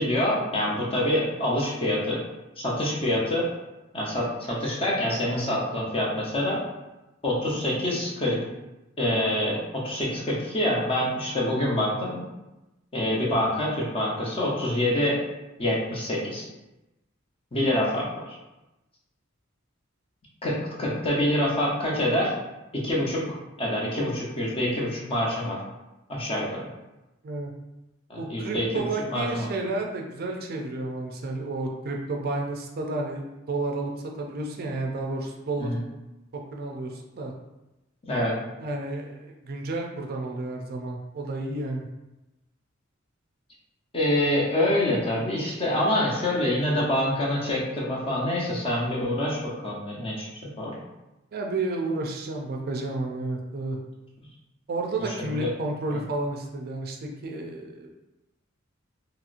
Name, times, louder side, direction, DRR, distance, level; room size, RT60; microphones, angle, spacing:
voice 1, 0.0-2.2 2.6-3.4 3.9-6.6 7.2-8.4 9.0-12.2 12.9-15.2 15.6-16.5 17.5-18.4 20.4-22.3 22.7-25.6 26.1-26.6 28.1-28.8 29.1-29.5 35.6-35.8 38.1-38.3 43.9-50.7 55.1-55.5 55.9-56.0, left 1 dB, 30° left, -4 dB, 0.7 m, -26 dB
voice 2, 28.2-35.7 36.5-37.3 38.6-41.9 51.3-53.8 54.7-57.0 57.2-57.9, right 2 dB, 50° right, 1 dB, 0.4 m, -31 dB
2.9 x 2.8 x 2.5 m, 1.0 s
head